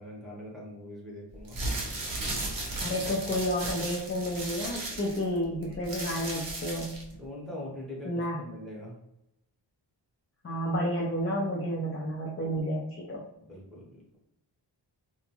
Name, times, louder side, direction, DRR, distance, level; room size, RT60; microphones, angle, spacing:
voice 1, 0.0-1.6 7.1-9.0 13.4-14.2, left 1 dB, ahead, -6 dB, 0.8 m, -43 dB
sound 1, 1.4-7.1, right 2 dB, 50° right, 0.7 m, -35 dB
voice 2, 2.8-7.0 8.0-8.4 10.4-13.2, equal, 30° left, -3 dB, 0.4 m, -31 dB
2.4 x 2.3 x 2.8 m, 0.86 s
wide cardioid pair, 145°, 45 cm